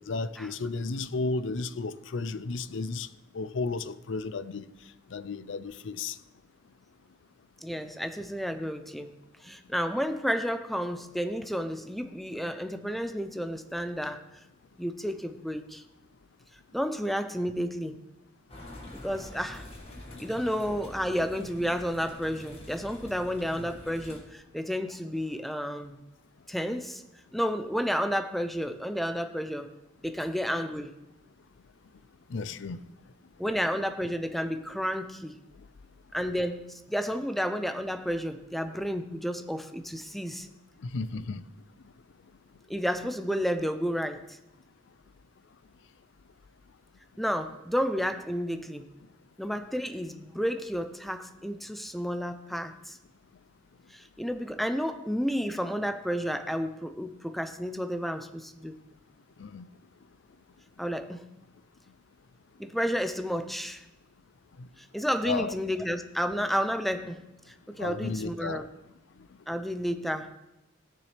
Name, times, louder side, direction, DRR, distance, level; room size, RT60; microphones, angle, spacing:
voice 1, 0.0-3.1 3.3-4.7 5.1-6.2 23.0-23.1 32.3-32.8 40.8-41.4 59.4-59.7 64.6-64.7 65.2-65.5 67.8-68.6, left 3 dB, 70° left, 15 dB, 0.5 m, -33 dB
voice 2, 7.6-9.2 9.4-14.2 14.8-15.8 16.7-18.0 19.0-19.6 20.2-26.0 26.5-27.0 27.3-29.7 30.0-30.9 33.4-35.4 36.1-40.5 42.7-44.4 47.2-48.9 49.4-53.0 53.9-58.8 60.8-61.2 62.6-63.8 64.9-67.2 67.5-68.6 69.5-70.3, equal, ahead, 9 dB, 0.5 m, -31 dB
sound 1, 18.5-24.2, left 1 dB, 35° left, 1.8 m, -46 dB
16.5 x 7.0 x 3.3 m, 0.94 s
head